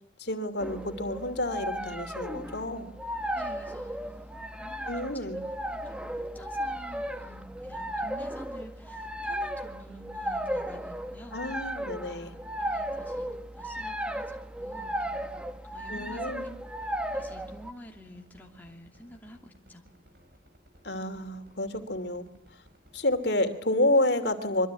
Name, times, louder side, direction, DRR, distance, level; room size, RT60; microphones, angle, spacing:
voice 1, 0.2-2.9 4.9-5.4 11.3-12.3 15.9-16.5 20.8-22.6 22.9-24.7, left 1 dB, 75° left, 8 dB, 2.8 m, -29 dB
sound 1, 0.6-17.7, equal, 5° right, 1.2 m, -35 dB
voice 2, 3.3-11.6 12.0-16.4 16.8-19.8, equal, 10° left, 1 dB, 2.8 m, -50 dB
sound 2, 17.8-23.3, equal, 65° right, 6.9 m, -58 dB
25.0 x 23.5 x 9.6 m, 0.76 s
head